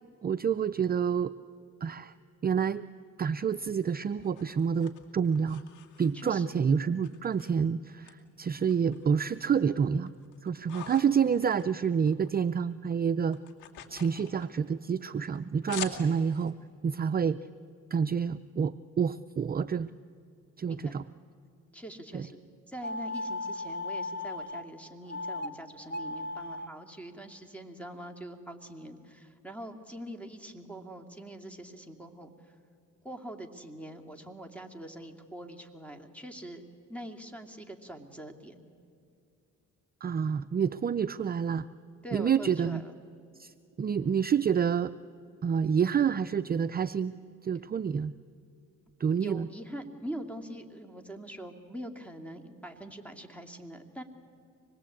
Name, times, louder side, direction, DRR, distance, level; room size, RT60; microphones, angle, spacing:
voice 1, 0.2-1.3 1.8-2.1 2.4-2.8 3.2-5.6 6.0-10.1 10.4-13.4 13.9-16.5 16.8-17.4 17.9-19.9 20.6-21.0 22.1-22.3 40.0-41.6 42.1-42.8 43.4-44.9 45.4-47.1 47.4-48.1 49.0-49.5, right 7 dB, 30° right, 11 dB, 0.5 m, -28 dB
sound 1, 3.7-6.5 7.0-8.1 8.5-9.5 9.8-12.4 12.7-16.5, left 9 dB, 85° left, 2.5 m, -46 dB
voice 2, 6.1-6.6 20.7-21.0 21.7-22.4 22.7-32.5 33.0-38.6 42.0-43.0 49.2-54.0, right 1 dB, 5° left, 5 dB, 2.5 m, -43 dB
sound 2, 22.8-24.6 25.1-25.5 25.8-26.7, left 2 dB, 35° left, 1.5 m, -36 dB
25.5 x 20.5 x 8.5 m, 2.5 s
cardioid pair, 90°, 30 cm